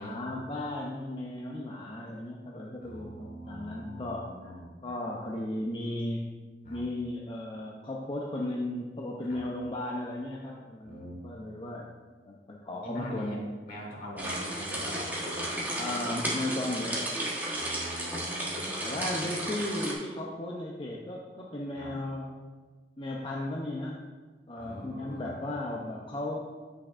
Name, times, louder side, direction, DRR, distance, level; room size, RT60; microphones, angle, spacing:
voice 1, 0.0-4.5 4.8-6.3 6.7-11.9 12.2-13.4 15.8-17.1 18.8-22.3 23.0-24.0 24.5-26.4, left 1 dB, 30° left, -3 dB, 0.6 m, -35 dB
voice 2, 2.8-4.7 6.6-6.8 9.3-9.4 10.8-11.2 12.8-13.4 13.7-15.7 17.5-19.3 21.7-21.9 24.6-25.3, equal, 55° left, -2 dB, 1.8 m, -43 dB
sound 1, 14.2-19.9, right 1 dB, 10° right, 1.2 m, -33 dB
8.2 x 6.2 x 2.5 m, 1.3 s
head